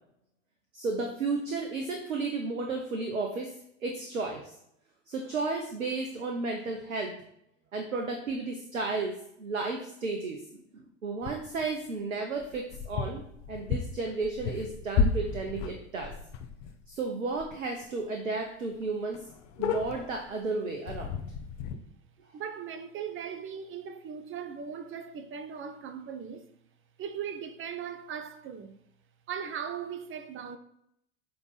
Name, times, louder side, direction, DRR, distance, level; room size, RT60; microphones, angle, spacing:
voice 1, 0.7-3.5 3.8-4.5 5.1-7.1 7.7-13.2 13.5-16.1 16.9-19.3 19.6-21.2, right 3 dB, 80° right, 1.1 m, -33 dB
sound 1, 11.2-11.7 12.4-16.9 17.3-17.6 17.8-17.9 18.4-18.5 18.7-18.8 19.1-20.3 20.9-21.7, left 5 dB, 50° left, 1.0 m, -33 dB
voice 2, 22.3-26.5 27.0-28.8 29.3-30.6, right 7 dB, 30° right, 0.9 m, -38 dB
8.8 x 3.9 x 5.8 m
figure-of-eight pair, 80°, 39 cm